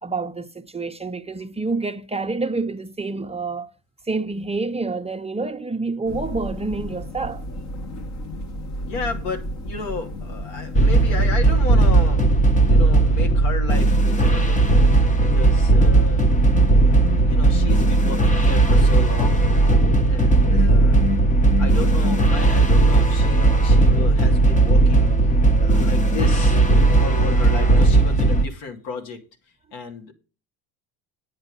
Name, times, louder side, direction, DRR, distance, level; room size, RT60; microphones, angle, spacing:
voice 1, 0.0-3.7 4.1-7.4, right 3 dB, 15° right, 0.7 m, -28 dB
sound 1, 6.1-11.3, equal, 40° left, 1.6 m, -33 dB
voice 2, 8.8-12.3 12.6-14.7 15.2-16.2 16.8-19.4 20.1-21.0 21.6-26.6 26.9-29.2 29.7-30.1, left 4 dB, 75° left, 2.9 m, -33 dB
sound 2, 10.7-28.4, right 2 dB, 15° left, 0.9 m, -16 dB
9.6 x 8.9 x 5.3 m
cardioid pair, 120°, 44 cm